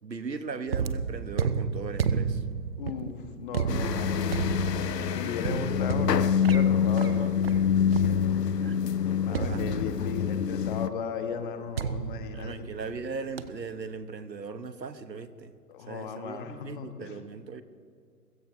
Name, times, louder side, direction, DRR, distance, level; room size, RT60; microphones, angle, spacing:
voice 1, 0.0-2.4 8.5-8.7 9.3-9.6 12.3-15.5 15.9-17.6, right 4 dB, 90° right, 12 dB, 1.1 m, -38 dB
sound 1, 0.7-8.6 9.3-10.3 11.8-13.0 13.4-13.7, right 6 dB, 40° right, 0.6 m, -32 dB
voice 2, 2.8-4.6 5.1-7.6 8.0-8.4 9.2-12.6 15.7-17.1, left 6 dB, 30° left, 7 dB, 1.3 m, -36 dB
sound 2, 3.7-10.9, left 8 dB, 75° left, 0.8 m, -26 dB
28.5 x 16.0 x 2.7 m, 2.2 s
figure-of-eight pair, 130°, 50 cm